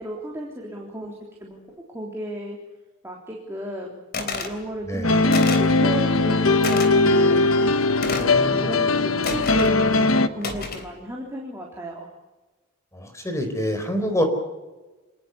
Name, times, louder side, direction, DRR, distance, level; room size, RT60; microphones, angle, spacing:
voice 1, 0.0-1.6 1.9-2.6 3.0-7.4 8.1-12.1, right 1 dB, 10° right, -2 dB, 3.6 m, -34 dB
sound 1, 4.1-4.6 5.3-5.7 6.6-6.9 8.0-8.4 9.2-9.7 10.4-10.9, left 4 dB, 45° left, 3.4 m, -30 dB
sound 2, 5.0-10.3, left 2 dB, 70° left, 1.2 m, -19 dB
voice 2, 8.2-8.7 12.9-14.2, equal, 15° left, 7 dB, 4.4 m, -27 dB
27.0 x 20.0 x 7.1 m, 1.1 s
head